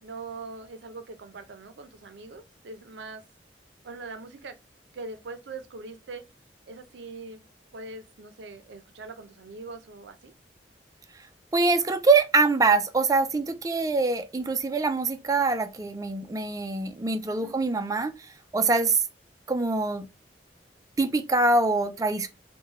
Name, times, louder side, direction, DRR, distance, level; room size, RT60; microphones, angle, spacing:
voice 1, 0.0-3.2 3.8-4.6 4.9-6.2 6.7-7.4 7.7-10.3 17.3-17.5, right 3 dB, 80° right, 0.5 m, -42 dB
voice 2, 11.5-19.0 19.5-20.1 21.0-22.3, right 3 dB, 20° right, 0.4 m, -24 dB
3.2 x 2.2 x 3.5 m
head